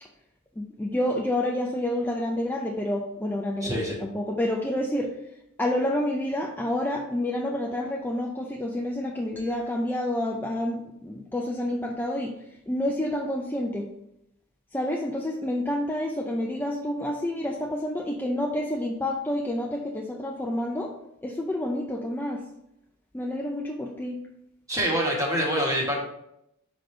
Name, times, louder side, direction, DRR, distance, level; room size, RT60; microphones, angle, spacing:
voice 1, 0.6-5.1 5.6-12.3 12.7-13.9 14.7-20.9 21.2-22.4 23.1-24.2, left 1 dB, 10° left, -1 dB, 0.5 m, -29 dB
voice 2, 3.6-4.0 24.7-26.0, equal, 15° right, -2 dB, 1.6 m, -25 dB
5.8 x 5.2 x 3.3 m, 0.80 s
head